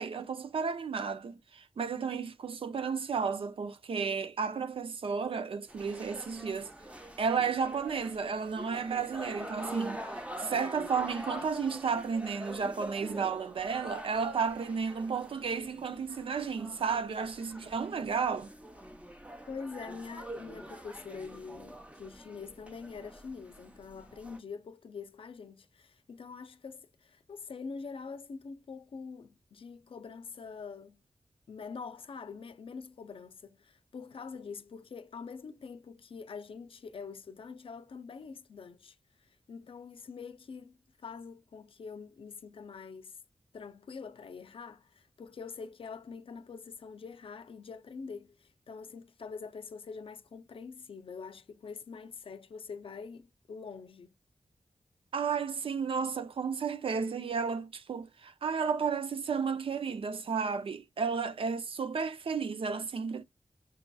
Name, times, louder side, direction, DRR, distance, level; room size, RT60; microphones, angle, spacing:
voice 1, 0.0-6.7 7.2-10.0 10.4-18.5 55.1-63.2, right 5 dB, 75° right, 0.5 m, -33 dB
sound 1, 5.7-24.4, right 1 dB, 15° right, 0.8 m, -45 dB
voice 2, 19.5-31.0 31.5-43.2 43.5-54.1, left 5 dB, 75° left, 0.5 m, -45 dB
5.9 x 2.6 x 2.3 m
wide cardioid pair, 85°, 9 cm